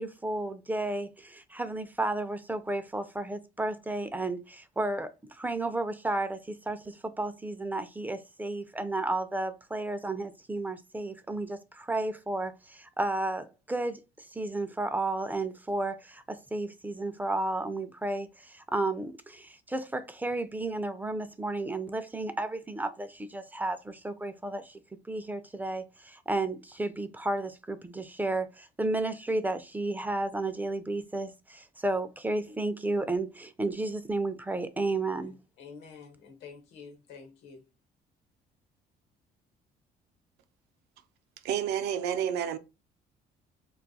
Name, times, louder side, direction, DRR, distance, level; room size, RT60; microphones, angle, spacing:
voice 1, 0.0-14.0 14.3-24.8 25.1-35.4, right 2 dB, 10° right, 0.3 m, -32 dB
voice 2, 35.2-37.6, left 5 dB, 85° left, 1.0 m, -49 dB
voice 3, 41.4-42.6, right 9 dB, 80° right, 0.5 m, -29 dB
2.3 x 2.3 x 3.9 m
cardioid pair, 110°, 17 cm